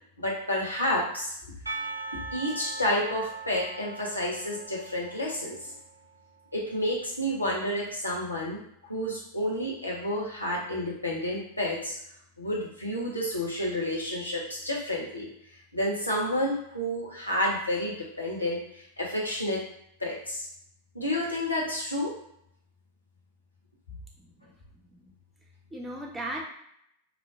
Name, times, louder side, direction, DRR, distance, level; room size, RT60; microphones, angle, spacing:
voice 1, 0.2-1.3 2.3-5.7 6.5-11.9 12.4-15.3 15.7-19.6 20.0-20.5 20.9-22.1, left 1 dB, 85° left, -4 dB, 1.3 m, -30 dB
Percussion / Church bell, 1.7-6.7, right 3 dB, 80° right, 0.6 m, -40 dB
voice 2, 24.2-24.5 24.9-25.1 25.7-26.4, right 1 dB, 10° right, -1 dB, 1.0 m, -37 dB
4.6 x 3.6 x 2.6 m, 0.71 s
figure-of-eight pair, 90°, 0 cm